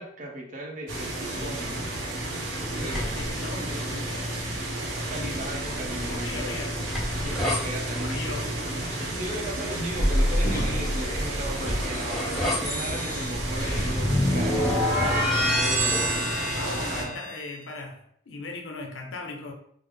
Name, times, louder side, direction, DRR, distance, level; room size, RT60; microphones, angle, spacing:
voice 1, 0.0-2.0 2.7-3.1 5.0-6.6 7.2-8.4 9.0-14.6 15.1-17.2, right 1 dB, 45° right, 0.6 m, -37 dB
sound 1, 0.9-17.0, right 1 dB, 80° right, 0.8 m, -32 dB
sound 2, 2.9-3.3 5.2-7.6 11.1-17.5, equal, ahead, 0.7 m, -28 dB
voice 2, 3.0-4.7 5.1-8.5 16.6-19.5, left 3 dB, 80° left, 0.6 m, -39 dB
sound 3, 9.9-15.1, equal, 50° left, 0.9 m, -29 dB
3.6 x 2.0 x 3.4 m
head